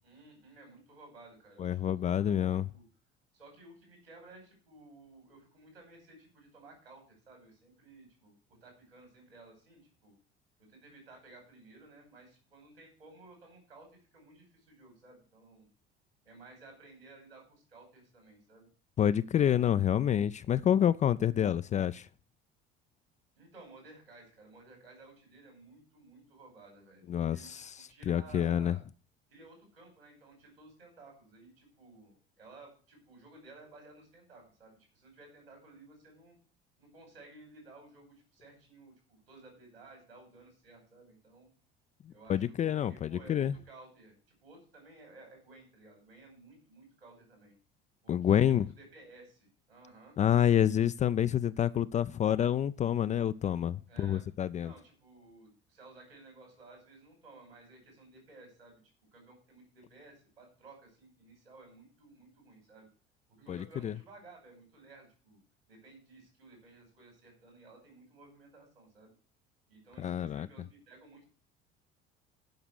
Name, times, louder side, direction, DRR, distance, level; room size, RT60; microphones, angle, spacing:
voice 1, 0.0-2.5 2.7-2.8 3.3-10.1 10.6-15.7 16.2-18.7 23.4-27.0 27.3-28.8 29.3-36.4 36.8-41.5 42.1-44.2 44.4-47.5 48.0-50.2 53.9-54.3 54.6-58.8 59.1-62.9 63.3-65.4 65.7-69.1 69.7-71.3, right 2 dB, 80° right, 5.5 m, -56 dB
voice 2, 1.6-2.7 19.0-22.1 27.1-28.8 42.1-43.5 48.1-48.7 50.2-54.7 63.5-63.9 70.0-70.5, left 10 dB, 25° left, 0.4 m, -28 dB
10.5 x 5.8 x 8.1 m
figure-of-eight pair, 60°, 29 cm